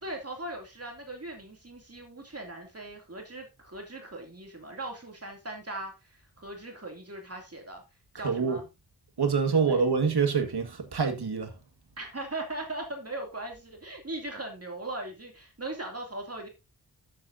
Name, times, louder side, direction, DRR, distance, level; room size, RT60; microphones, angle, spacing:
voice 1, 0.0-7.8 8.2-8.6 9.5-9.8 12.0-16.5, right 2 dB, 40° right, 2.6 m, -39 dB
voice 2, 8.1-8.6 9.2-11.5, right 5 dB, 80° right, 1.8 m, -26 dB
12.5 x 7.7 x 2.6 m
wide cardioid pair, 80°, 38 cm